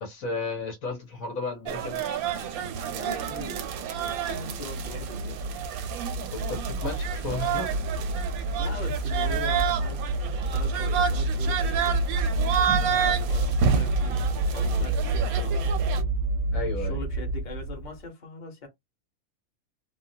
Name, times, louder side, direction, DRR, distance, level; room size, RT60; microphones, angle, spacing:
voice 1, 0.0-2.0 6.3-7.8 16.5-17.0, left 3 dB, 70° left, 1.4 m, -33 dB
sound 1, 1.7-16.0, right 7 dB, 90° right, 1.1 m, -30 dB
sound 2, 2.6-18.0, right 2 dB, 65° right, 0.8 m, -29 dB
voice 2, 2.8-3.8 4.1-5.4 8.6-10.0 10.5-12.0 12.8-15.6 16.8-18.7, left 2 dB, 35° left, 1.2 m, -41 dB
3.6 x 2.0 x 2.7 m
omnidirectional pair, 1.5 m